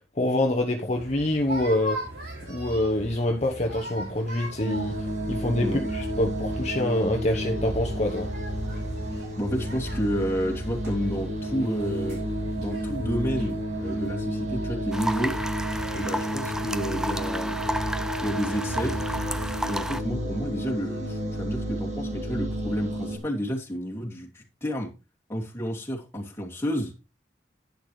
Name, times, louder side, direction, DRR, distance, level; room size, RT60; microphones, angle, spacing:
voice 1, 0.2-2.0 2.5-5.0 5.3-8.3, left 1 dB, 40° left, 2 dB, 1.1 m, -26 dB
sound 1, 0.9-19.9, right 1 dB, 65° right, 5.9 m, -39 dB
sound 2, 4.6-23.2, equal, 40° right, 2.1 m, -31 dB
voice 2, 9.4-12.2 12.6-15.3 15.9-17.7 18.2-18.9 19.7-24.9 25.3-26.9, equal, 15° left, -1 dB, 2.7 m, -30 dB
sound 3, 14.9-20.0, equal, 5° right, 0.5 m, -32 dB
11.0 x 9.6 x 3.3 m, 0.28 s
head